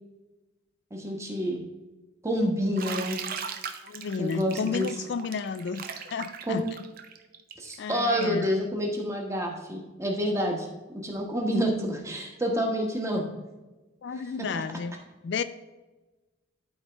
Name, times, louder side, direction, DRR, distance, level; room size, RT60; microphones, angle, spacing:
voice 1, 0.9-1.6 2.2-3.2 4.2-4.9 6.5-6.6 7.6-10.7 10.9-13.2, equal, 15° right, 1 dB, 1.1 m, -28 dB
Bathtub (filling or washing), 2.8-8.4, right 6 dB, 45° right, 0.6 m, -38 dB
voice 2, 3.8-5.8 6.1-6.7 7.8-8.5 14.0-14.9 15.2-15.4, left 5 dB, 60° left, 12 dB, 0.3 m, -32 dB
12.5 x 4.2 x 3.4 m, 1.2 s
head